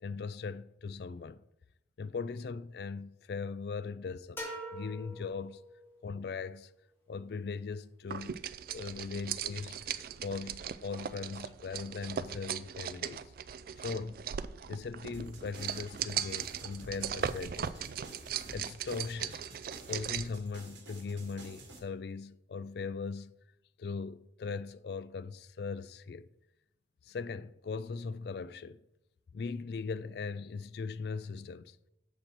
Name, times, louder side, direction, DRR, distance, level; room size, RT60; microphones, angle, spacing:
voice 1, 0.0-1.4 2.0-4.4 4.7-5.6 6.0-6.7 7.1-8.4 8.7-9.8 10.2-13.3 13.8-14.2 14.7-17.8 18.5-19.4 19.9-23.3 23.8-26.3 27.1-28.8 29.3-31.8, left 4 dB, 55° left, 0.3 m, -39 dB
sound 1, 4.4-6.1, right 1 dB, 10° left, 1.2 m, -44 dB
sound 2, 8.1-20.4, right 8 dB, 50° right, 0.3 m, -39 dB
sound 3, 15.1-21.8, right 2 dB, 75° right, 1.9 m, -51 dB
7.5 x 6.5 x 4.4 m
head